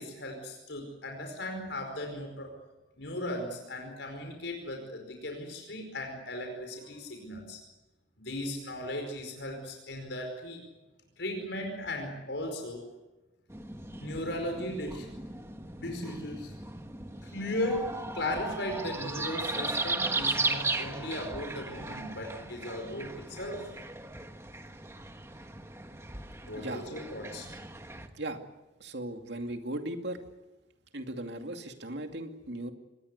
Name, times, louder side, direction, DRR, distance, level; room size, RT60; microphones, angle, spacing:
voice 1, 0.0-2.5 3.0-7.6 8.2-10.6 11.2-12.8 14.0-15.1 15.8-16.5 17.2-23.7 26.4-27.5, left 1 dB, 70° left, 3 dB, 4.9 m, -37 dB
sound 1, 13.5-28.1, right 2 dB, 15° right, 1.4 m, -37 dB
voice 2, 28.8-30.2 30.9-32.7, right 1 dB, 65° right, 5 dB, 2.5 m, -37 dB
25.5 x 21.0 x 8.1 m, 1.0 s
head